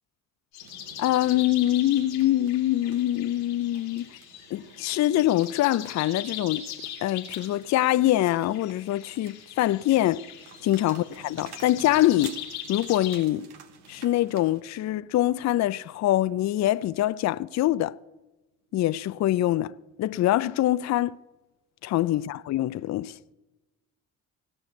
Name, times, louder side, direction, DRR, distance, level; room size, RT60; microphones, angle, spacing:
sound 1, 0.5-13.2, left 9 dB, 90° left, 2.0 m, -41 dB
sound 2, 0.6-14.6, right 7 dB, 75° right, 1.3 m, -51 dB
voice 1, 1.0-4.0 4.5-6.7 7.0-10.3 10.6-12.4 12.7-13.5 13.9-18.0 18.7-19.7 20.0-21.2 21.8-23.2, left 14 dB, 45° left, 0.5 m, -24 dB
17.0 x 6.5 x 8.4 m
hypercardioid pair, 55°, 39 cm